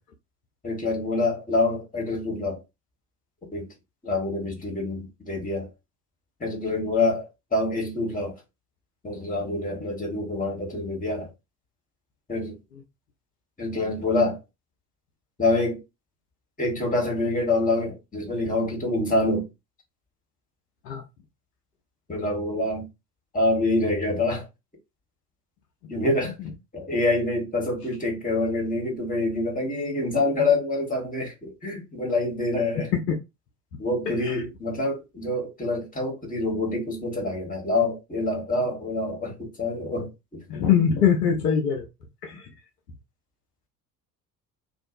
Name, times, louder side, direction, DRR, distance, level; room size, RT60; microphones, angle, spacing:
voice 1, 0.6-2.6 3.5-3.7 4.0-5.7 6.4-8.4 9.0-11.3 12.3-12.6 13.6-14.4 15.4-15.8 16.6-19.5 22.1-22.9 23.3-24.5 25.9-26.3 26.7-32.9 33.8-40.4, left 2 dB, 15° left, 1.5 m, -26 dB
voice 2, 40.5-41.9 42.2-42.4, left 8 dB, 75° left, 0.7 m, -22 dB
2.6 x 2.3 x 2.6 m
figure-of-eight pair, 55°, 49 cm